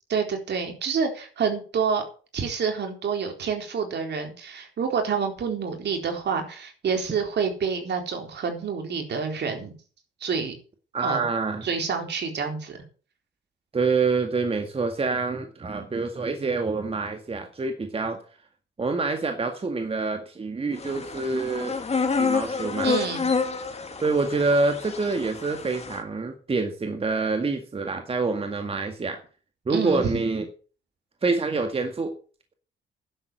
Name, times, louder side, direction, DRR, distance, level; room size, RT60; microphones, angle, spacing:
voice 1, 0.1-2.0 2.3-9.7 10.2-10.5 11.0-11.2 11.6-12.8 22.8-23.3 29.7-30.0, right 6 dB, 60° right, 4 dB, 4.0 m, -28 dB
voice 2, 10.9-11.7 13.7-18.2 18.8-21.8 22.2-22.9 24.0-29.2 29.7-30.5 31.2-32.1, right 3 dB, 30° right, 6 dB, 2.0 m, -26 dB
sound 1, 20.8-26.0, left 5 dB, 30° left, 2.3 m, -28 dB
11.0 x 7.8 x 7.8 m, 0.39 s
cardioid pair, 90°, 20 cm